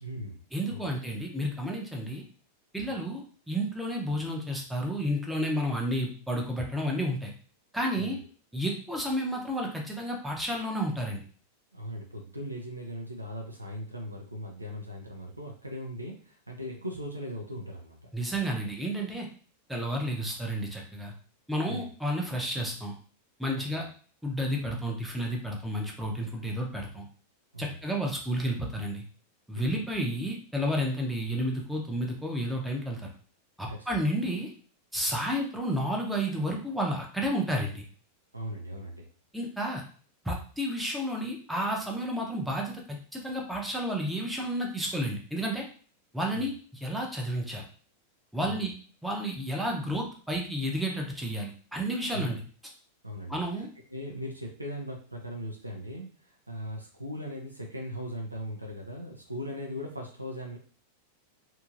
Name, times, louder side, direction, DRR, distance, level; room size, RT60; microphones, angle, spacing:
voice 1, 0.0-0.4 0.7-0.9 7.9-8.2 11.7-18.0 21.7-21.9 23.5-23.8 27.5-27.9 29.5-29.8 33.7-33.9 35.1-35.2 38.3-39.1 46.3-46.5 48.4-48.7 52.1-52.3 53.0-60.6, equal, 85° right, 0 dB, 0.5 m, -39 dB
voice 2, 0.5-2.2 2.7-7.3 7.7-8.2 8.5-11.2 18.1-19.3 19.7-21.1 21.5-22.9 23.4-23.8 24.2-27.1 27.6-29.0 29.5-33.1 33.6-34.5 34.9-37.8 39.3-39.8 40.2-45.6 46.1-46.5 46.8-47.6 48.3-48.7 49.0-52.4 53.3-53.7, equal, ahead, -1 dB, 0.7 m, -31 dB
2.9 x 2.7 x 2.4 m, 0.42 s
figure-of-eight pair, 90°, 0 cm